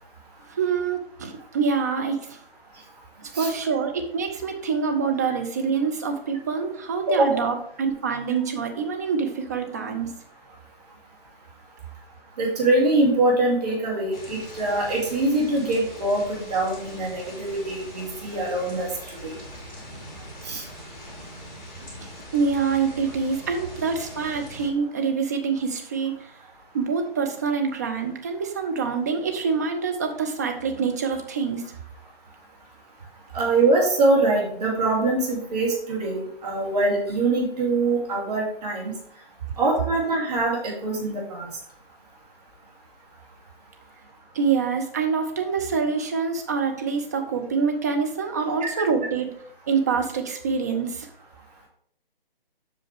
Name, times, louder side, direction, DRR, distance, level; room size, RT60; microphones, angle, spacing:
voice 1, 0.5-2.4 3.2-10.1 22.0-26.3 26.7-31.6 44.3-49.3 49.7-51.1, right 5 dB, 20° right, 4 dB, 0.5 m, -26 dB
voice 2, 7.1-7.4 12.4-18.9 19.2-19.3 20.4-20.6 33.3-38.9 39.6-41.5 48.6-48.8, right 2 dB, 45° right, -1 dB, 2.6 m, -23 dB
sound 1, 14.1-24.7, equal, 5° left, 3.2 m, -42 dB
7.8 x 5.7 x 3.4 m, 0.65 s
figure-of-eight pair, 150°, 29 cm